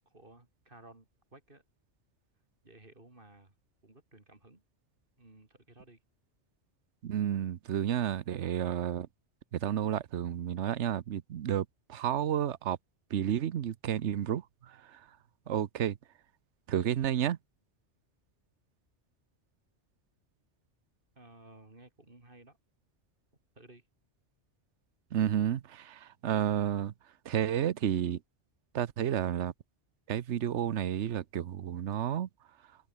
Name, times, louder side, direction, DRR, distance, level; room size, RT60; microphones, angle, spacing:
voice 1, 0.1-1.6 2.6-3.5 3.8-4.6 5.2-6.0 21.2-22.6 23.6-23.9, right 2 dB, 50° right, 3.9 m, -56 dB
voice 2, 7.0-9.1 9.5-12.8 13.1-15.2 15.5-16.0 16.7-17.4 25.1-26.9 27.2-28.2 28.7-29.5 30.1-32.3, right 10 dB, 80° right, 1.1 m, -31 dB
omnidirectional pair, 1.2 m